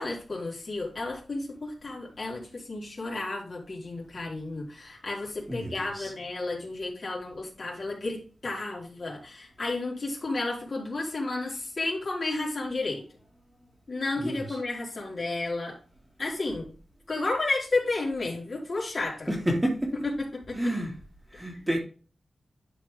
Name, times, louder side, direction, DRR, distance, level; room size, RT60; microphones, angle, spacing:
voice 1, 0.0-13.0 13.9-15.8 16.2-16.7 17.1-19.3 20.2-20.7, left 2 dB, 45° left, 3.8 m, -32 dB
voice 2, 5.5-6.1 14.2-14.6 19.3-19.9 20.6-20.9 21.3-21.8, equal, 15° right, 2.5 m, -29 dB
11.5 x 4.9 x 3.5 m
wide cardioid pair, 120°, 0 cm